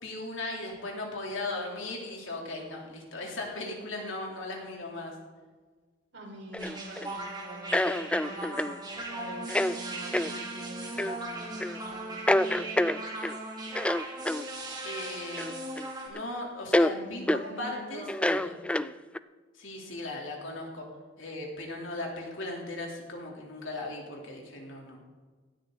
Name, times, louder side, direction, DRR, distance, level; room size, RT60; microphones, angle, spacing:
voice 1, 0.0-5.1 14.8-15.5 16.1-18.0 18.4-18.5 19.5-20.9 21.2-25.0, left 2 dB, 75° left, -1 dB, 3.6 m, -37 dB
voice 2, 6.1-8.7 9.0-12.9 16.9-18.5, right 1 dB, 70° right, -2 dB, 5.1 m, -45 dB
sound 1, 6.5-7.1 7.7-8.8 9.5-9.8 10.1-10.3 11.0-11.2 11.6-11.8 12.3-13.4 13.7-14.4 15.4-15.9 16.1-16.2 16.7-16.9 17.3-17.5 18.1-19.2, left 1 dB, 5° left, 0.3 m, -27 dB
sound 2, 6.6-16.1, right 2 dB, 20° right, 2.9 m, -38 dB
17.5 x 13.0 x 4.1 m, 1.4 s
head